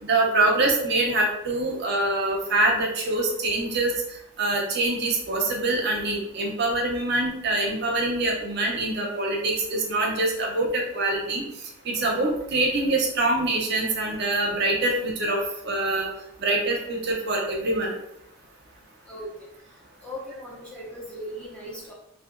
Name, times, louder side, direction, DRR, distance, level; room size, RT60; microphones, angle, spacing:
voice 1, 0.0-3.9 4.4-11.4 11.8-15.4 15.6-16.1 16.4-17.9, right 2 dB, 50° right, 0 dB, 0.6 m, -24 dB
voice 2, 20.0-21.9, equal, 5° left, -5 dB, 0.4 m, -38 dB
2.7 x 2.5 x 2.4 m, 0.78 s
head